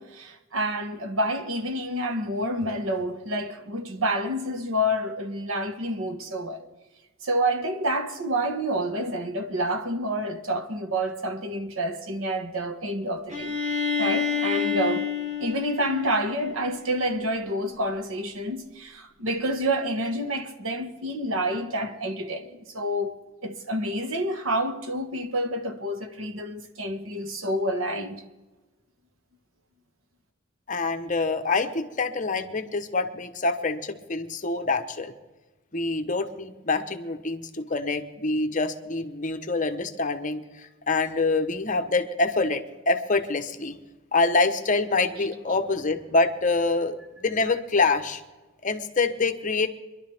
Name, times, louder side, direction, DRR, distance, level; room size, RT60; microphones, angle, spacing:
voice 1, 0.0-6.7 7.2-13.6 14.0-15.1 15.4-28.2, right 1 dB, 85° right, 1.6 m, -28 dB
Bowed string instrument, 13.3-17.0, left 6 dB, 35° right, 2.3 m, -29 dB
voice 2, 30.7-35.1 35.7-40.4 40.9-43.8 44.1-48.2 48.6-49.7, left 3 dB, 40° left, 1.0 m, -26 dB
25.0 x 11.5 x 3.5 m
head